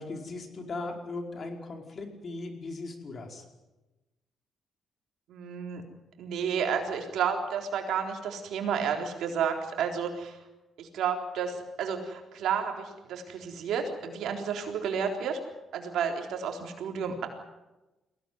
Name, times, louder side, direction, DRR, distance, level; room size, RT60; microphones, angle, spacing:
voice 1, 0.0-3.4, left 3 dB, 45° left, 3 dB, 4.9 m, -38 dB
voice 2, 5.3-5.8 6.2-10.4 10.8-15.4 15.7-17.3, right 7 dB, 80° right, 3 dB, 3.9 m, -31 dB
22.5 x 17.0 x 9.5 m, 1.1 s
cardioid pair, 90°, 0 cm